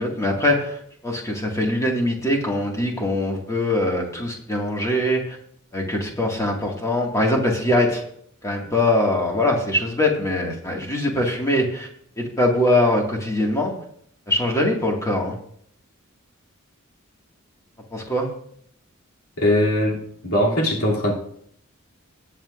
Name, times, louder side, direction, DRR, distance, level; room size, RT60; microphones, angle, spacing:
voice 1, 0.0-5.4 5.7-8.0 8.4-11.9 12.2-13.7 14.3-15.4 17.9-18.3, left 1 dB, 15° left, -1 dB, 2.0 m, -22 dB
voice 2, 19.4-21.1, left 1 dB, 80° left, -3 dB, 2.9 m, -21 dB
19.5 x 7.6 x 2.5 m, 0.68 s
head